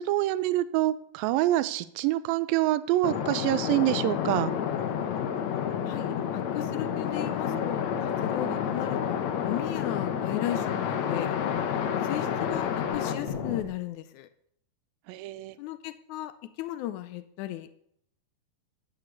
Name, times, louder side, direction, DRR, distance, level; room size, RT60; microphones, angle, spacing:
voice 1, 0.0-4.5 8.4-8.5 15.1-15.6, right 15 dB, 85° right, 14 dB, 2.4 m, -26 dB
sound 1, 3.0-13.6, left 8 dB, 65° left, 1.9 m, -29 dB
voice 2, 5.9-11.4 12.0-14.3 15.6-17.7, left 13 dB, 90° left, 11 dB, 1.7 m, -36 dB
sound 2, 8.1-8.2 11.6-11.8 12.4-13.8, right 8 dB, 70° right, 1.9 m, -48 dB
13.0 x 7.6 x 8.0 m, 0.72 s
omnidirectional pair, 4.2 m